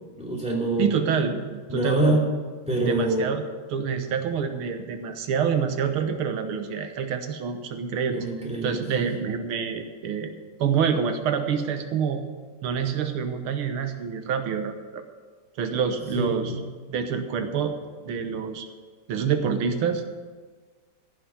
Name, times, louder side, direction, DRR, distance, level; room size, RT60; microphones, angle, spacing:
voice 1, 0.1-1.0 1.7-2.2 2.7-3.3 8.1-9.1 16.1-16.6, right 1 dB, 5° right, -3 dB, 2.6 m, -25 dB
voice 2, 0.8-2.0 2.9-8.3 8.6-10.3 10.6-12.2 12.6-15.0 15.6-16.6 16.9-17.7 18.0-18.7 19.1-20.3, right 6 dB, 90° right, 7 dB, 1.9 m, -27 dB
14.5 x 6.4 x 9.1 m, 1.4 s
omnidirectional pair, 2.3 m